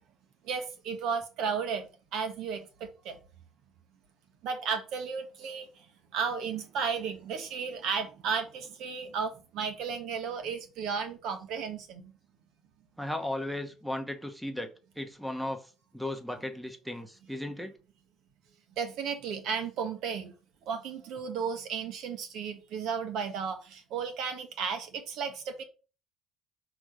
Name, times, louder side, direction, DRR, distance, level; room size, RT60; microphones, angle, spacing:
voice 1, 0.5-1.9 2.1-3.2 4.4-5.7 6.1-12.1 18.8-20.3 20.7-25.6, right 6 dB, 75° right, 1.1 m, -34 dB
voice 2, 13.0-14.7 15.0-15.6 15.9-17.7, left 1 dB, 5° right, 0.9 m, -35 dB
6.2 x 3.0 x 5.0 m
cardioid pair, 100°, 0 cm